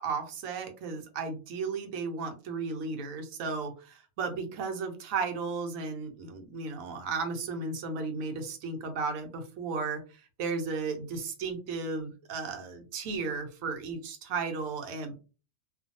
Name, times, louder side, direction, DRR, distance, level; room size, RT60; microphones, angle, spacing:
voice 1, 0.0-10.0 10.4-15.2, right 4 dB, 70° right, 5 dB, 1.0 m, -34 dB
2.5 x 2.2 x 2.6 m, 0.35 s
omnidirectional pair, 1.5 m